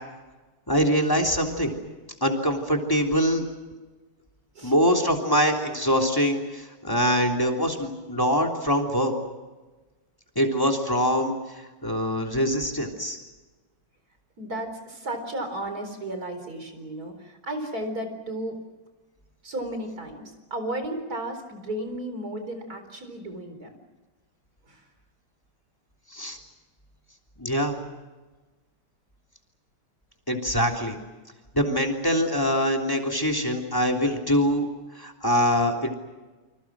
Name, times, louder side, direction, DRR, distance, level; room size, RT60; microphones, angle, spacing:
voice 1, 0.7-1.8 2.2-3.4 4.6-9.1 10.3-11.3 11.8-13.2 26.1-26.4 27.4-27.8 30.3-31.0 31.5-34.7 34.9-35.9, equal, 10° left, 2 dB, 3.3 m, -24 dB
voice 2, 14.4-18.6 19.4-23.7 24.7-24.9, right 1 dB, 55° right, 7 dB, 4.8 m, -34 dB
29.5 x 26.0 x 6.2 m, 1.2 s
omnidirectional pair, 1.9 m